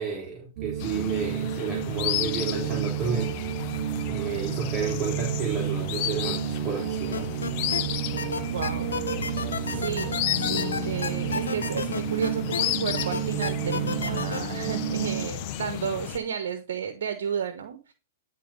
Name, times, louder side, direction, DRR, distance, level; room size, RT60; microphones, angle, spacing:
voice 1, 0.0-3.3 4.1-7.3, right 5 dB, 20° right, -3 dB, 3.4 m, -31 dB
sound 1, 0.6-15.3, right 12 dB, 50° right, 0.6 m, -31 dB
sound 2, 0.8-16.2, left 11 dB, 45° left, 0.8 m, -33 dB
sound 3, 7.1-7.8 8.2-12.6 13.0-14.4, left 5 dB, 85° left, 1.5 m, -31 dB
voice 2, 8.1-17.9, right 7 dB, 70° right, 9 dB, 1.2 m, -33 dB
10.5 x 4.3 x 5.3 m, 0.32 s
hypercardioid pair, 125°, 0 cm